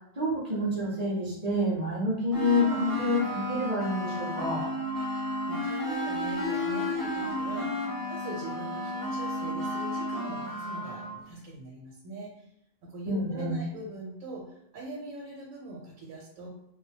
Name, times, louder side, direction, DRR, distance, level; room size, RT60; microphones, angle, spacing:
voice 1, 0.2-4.7 13.1-13.6, left 1 dB, 45° right, -5 dB, 0.5 m, -28 dB
sound 1, 2.3-11.2, left 1 dB, 35° left, 0.3 m, -32 dB
voice 2, 4.9-12.5 12.8-16.5, right 2 dB, 85° right, -2 dB, 1.0 m, -42 dB
2.2 x 2.1 x 2.7 m, 0.81 s
omnidirectional pair, 1.3 m